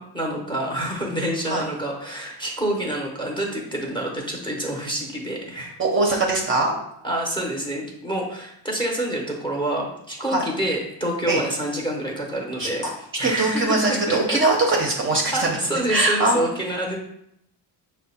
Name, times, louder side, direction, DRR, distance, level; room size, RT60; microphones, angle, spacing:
voice 1, 0.0-5.8 7.0-12.8 13.2-13.8 14.1-14.4 14.7-14.9 15.3-17.0, right 1 dB, 10° left, 0 dB, 0.7 m, -27 dB
voice 2, 5.8-6.7 10.3-10.4 11.3-11.4 12.6-12.9 13.2-15.6 15.9-16.4, right 2 dB, 30° right, 0 dB, 0.6 m, -21 dB
5.8 x 2.1 x 4.1 m, 0.76 s
cardioid pair, 145°, 45 cm